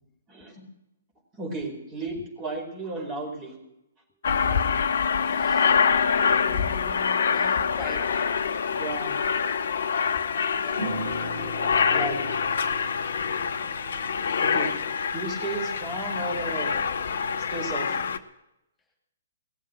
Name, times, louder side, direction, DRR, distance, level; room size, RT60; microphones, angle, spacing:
voice 1, 0.3-0.6 1.3-3.5 8.8-9.2 11.9-12.4 14.4-14.7 15.1-16.9 17.5-18.0, right 2 dB, 25° right, 2 dB, 4.7 m, -33 dB
Aircraft, 4.2-18.2, left 6 dB, 60° left, 0.9 m, -25 dB
voice 2, 5.1-5.8 6.1-8.5 10.5-12.6, left 2 dB, 15° left, 2 dB, 2.7 m, -44 dB
sound 1, 10.8-15.7, right 2 dB, 70° right, 6.1 m, -40 dB
18.0 x 7.4 x 8.9 m, 0.85 s
figure-of-eight pair, 125°, 0 cm